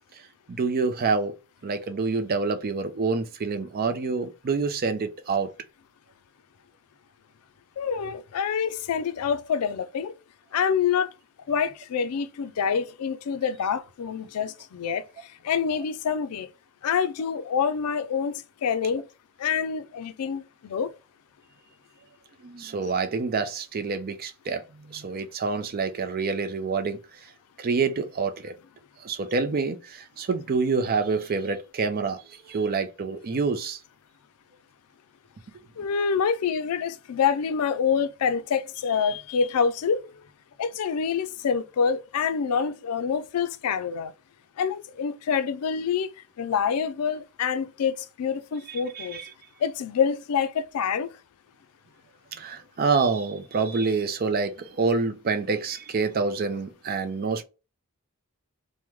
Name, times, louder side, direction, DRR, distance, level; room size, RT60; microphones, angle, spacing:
voice 1, 0.5-1.3 1.6-5.5 22.4-27.0 27.6-28.6 29.0-33.8 48.7-49.3 52.3-57.4, right 4 dB, 45° right, 0.4 m, -27 dB
voice 2, 7.8-10.1 10.5-11.1 11.5-16.5 16.8-19.1 19.4-20.9 35.8-40.1 40.6-44.1 44.6-46.1 46.4-49.2 49.6-51.1, left 6 dB, 85° left, 0.4 m, -26 dB
3.0 x 2.1 x 3.4 m
head